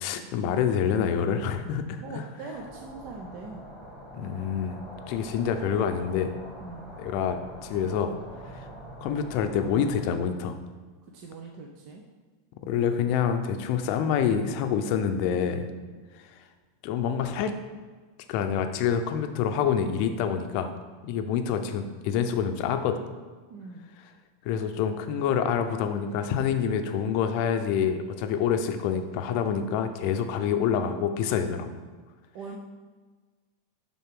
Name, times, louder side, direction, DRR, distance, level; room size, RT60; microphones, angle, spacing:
voice 1, 0.0-2.0 4.1-4.8 5.1-6.3 7.0-8.1 9.0-10.6 12.7-15.7 16.8-17.5 18.3-20.7 21.0-23.0 24.4-31.7, left 7 dB, 50° left, 7 dB, 0.6 m, -27 dB
voice 2, 2.0-3.6 6.6-6.9 11.1-12.0 15.8-16.0 23.5-23.9 32.3-32.6, right 3 dB, 45° right, 1 dB, 0.7 m, -41 dB
sound 1, 2.5-10.0, equal, ahead, 1.6 m, -44 dB
10.5 x 3.7 x 3.7 m, 1.4 s
supercardioid pair, 150°, 0 cm